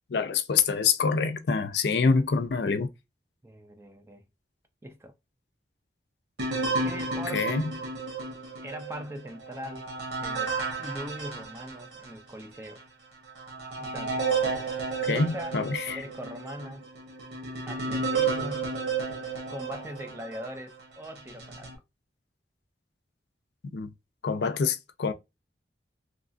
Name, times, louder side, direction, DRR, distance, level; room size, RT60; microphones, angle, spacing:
voice 1, 0.1-2.9 7.3-7.7 15.1-16.0 23.7-23.9 24.2-25.1, left 5 dB, 70° left, 0.4 m, -26 dB
voice 2, 3.4-4.3 4.8-5.1 6.8-7.7 8.6-12.8 13.8-14.3 15.0-15.6 15.9-16.9 17.7-18.7 19.5-21.7, equal, 15° right, 0.4 m, -41 dB
sound 1, 6.4-12.1 12.7-12.8 13.4-20.6 21.2-21.8, right 4 dB, 75° right, 1.0 m, -32 dB
3.1 x 2.4 x 2.4 m
head